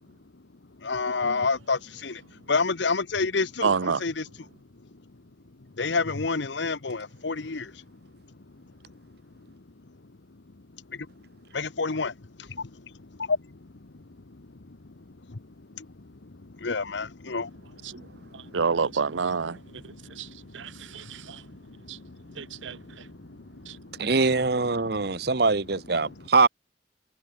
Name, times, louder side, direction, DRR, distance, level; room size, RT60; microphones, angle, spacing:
voice 1, 0.8-2.2 2.5-4.3 5.8-7.7 11.5-12.1 12.4-12.7 13.2-13.4 15.3-15.4 15.8-15.9 16.6-17.5 19.5-19.6 20.2-20.5 21.9-22.2 23.2-23.4 23.7-23.8, left 4 dB, 75° left, 1.0 m, -28 dB
voice 2, 3.6-4.0 17.8-17.9 18.5-19.6 20.2-20.3 20.5-21.0 21.9-22.0 22.4-22.8, right 5 dB, 90° right, 0.7 m, -27 dB
voice 3, 24.0-26.5, right 4 dB, 55° right, 1.0 m, -23 dB
head